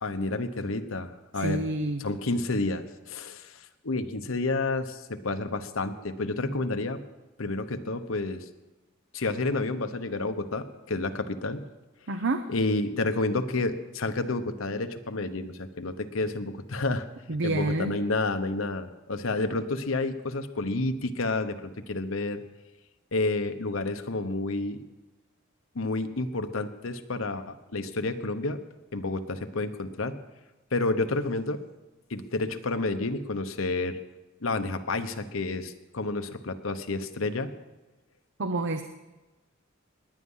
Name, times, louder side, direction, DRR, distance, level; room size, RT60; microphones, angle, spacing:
voice 1, 0.0-1.6 2.0-7.0 7.4-8.4 9.1-11.7 12.5-17.1 17.4-22.4 23.1-24.8 25.7-28.6 28.9-30.2 30.7-31.6 32.1-34.0 34.4-37.5, left 2 dB, 75° left, 8 dB, 1.0 m, -30 dB
voice 2, 1.4-2.0 12.1-12.4 17.3-18.0 38.4-38.8, right 2 dB, 65° right, 8 dB, 0.8 m, -28 dB
19.5 x 9.7 x 5.6 m, 1.1 s
head